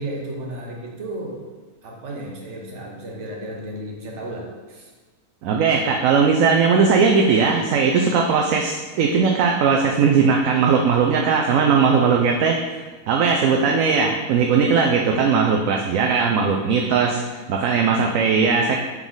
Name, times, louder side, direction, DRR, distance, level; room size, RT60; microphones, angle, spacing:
voice 1, 0.0-1.4 1.8-4.9, right 1 dB, 55° right, -1 dB, 1.3 m, -33 dB
voice 2, 5.4-12.8 13.1-18.7, right 5 dB, 70° right, 1 dB, 0.9 m, -18 dB
5.3 x 4.7 x 3.8 m, 1.3 s
omnidirectional pair, 1.6 m